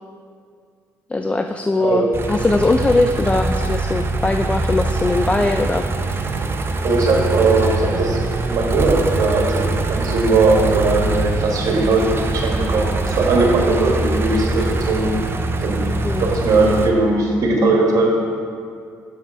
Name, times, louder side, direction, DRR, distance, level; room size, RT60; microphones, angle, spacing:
voice 1, 1.1-5.8 16.0-16.3, left 2 dB, 15° left, 6 dB, 0.3 m, -20 dB
sound 1, 2.1-16.9, right 3 dB, 35° right, 0.6 m, -23 dB
voice 2, 6.8-8.2 8.5-15.1 15.6-15.9 16.2-18.1, right 3 dB, 55° right, -1 dB, 1.6 m, -18 dB
6.5 x 5.8 x 4.4 m, 2.2 s
supercardioid pair, 60°, 7 cm